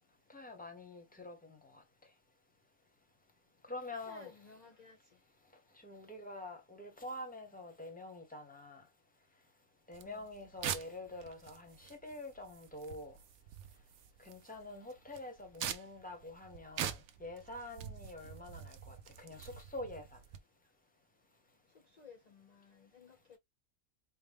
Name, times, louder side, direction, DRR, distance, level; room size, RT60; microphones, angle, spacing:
voice 1, 0.3-1.8 3.6-4.3 5.8-8.8 9.9-13.2 14.2-20.2, left 2 dB, 5° left, 0.8 m, -46 dB
voice 2, 4.1-5.0 10.0-10.3 21.8-23.4, left 5 dB, 50° left, 0.5 m, -57 dB
sound 1, 9.9-20.4, right 9 dB, 70° right, 1.0 m, -45 dB
4.2 x 2.1 x 3.5 m
omnidirectional pair, 1.5 m